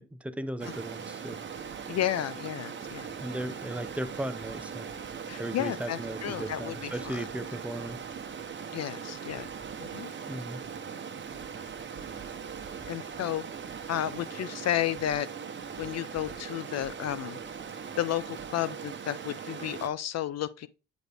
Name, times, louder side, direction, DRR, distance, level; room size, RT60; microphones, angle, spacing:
voice 1, 0.0-1.4 3.2-4.9 5.4-8.0 10.3-10.6, right 1 dB, 5° right, 0.6 m, -36 dB
Stream, 0.6-19.9, right 6 dB, 40° right, 1.0 m, -40 dB
voice 2, 1.9-3.1 5.3-7.3 8.7-9.5 9.8-10.1 12.8-13.4 13.9-15.3 15.8-17.4 18.0-20.7, left 12 dB, 60° left, 0.5 m, -32 dB
9.4 x 4.1 x 3.4 m
cardioid pair, 90°, 30 cm